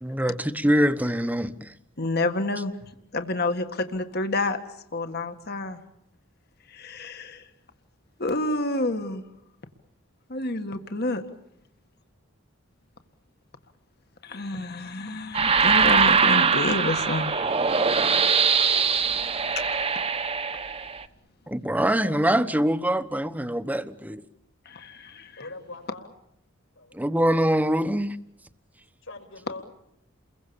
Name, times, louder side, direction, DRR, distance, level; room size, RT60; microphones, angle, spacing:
voice 1, 0.0-1.7 21.5-24.2 26.9-28.2, equal, 10° right, 1.1 m, -24 dB
voice 2, 2.0-2.7 3.1-4.6 4.9-5.8 6.7-7.4 8.2-9.2 10.3-11.2 14.2-17.5 20.5-20.6 24.7-25.4, left 2 dB, 50° left, 1.8 m, -29 dB
sound 1, 15.3-21.0, right 5 dB, 30° right, 1.2 m, -22 dB
voice 3, 25.4-26.1 26.7-26.9 29.0-29.6, left 3 dB, 75° left, 6.2 m, -41 dB
29.5 x 22.5 x 7.1 m
head